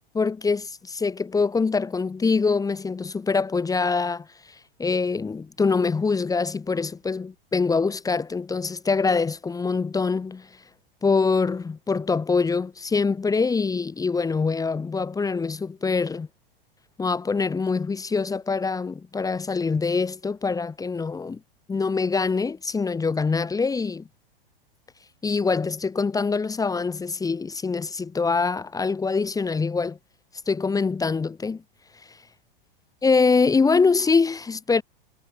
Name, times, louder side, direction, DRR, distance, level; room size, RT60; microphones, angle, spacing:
voice 1, 0.1-4.3 4.8-10.5 11.0-16.3 17.0-21.4 21.7-24.0 25.2-30.0 30.5-31.6 33.0-34.8, left 4 dB, 10° left, 1.7 m, -24 dB
figure-of-eight pair, 95°, 29 cm